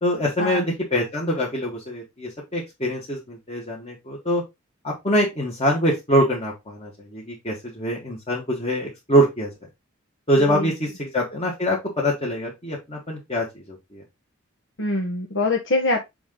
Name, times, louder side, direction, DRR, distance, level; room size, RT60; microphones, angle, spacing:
voice 1, 0.0-4.4 4.8-9.5 10.3-14.0, equal, 30° left, -4 dB, 1.9 m, -24 dB
voice 2, 14.8-16.0, left 2 dB, 60° left, 1 dB, 1.3 m, -24 dB
6.9 x 4.0 x 3.8 m, 0.20 s
head